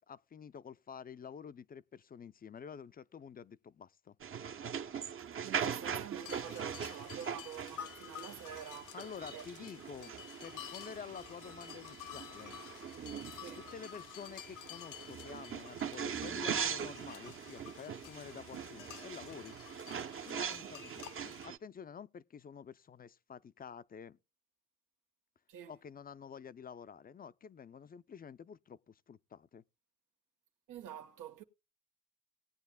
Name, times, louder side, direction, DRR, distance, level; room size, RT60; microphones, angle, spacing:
voice 1, 0.1-4.2 8.9-12.6 13.6-19.5 20.2-24.2 25.7-29.6, left 7 dB, 30° left, 0.5 m, -49 dB
sound 1, 4.2-21.6, right 7 dB, 45° right, 0.8 m, -41 dB
voice 2, 5.4-9.0 9.3-9.5 13.3-13.7 20.6-20.8 25.5-25.8 30.7-31.4, right 9 dB, 90° right, 1.4 m, -47 dB
sound 2, 6.2-21.5, left 11 dB, 80° left, 0.9 m, -51 dB
19.0 x 8.9 x 2.2 m
cardioid pair, 90°, 30 cm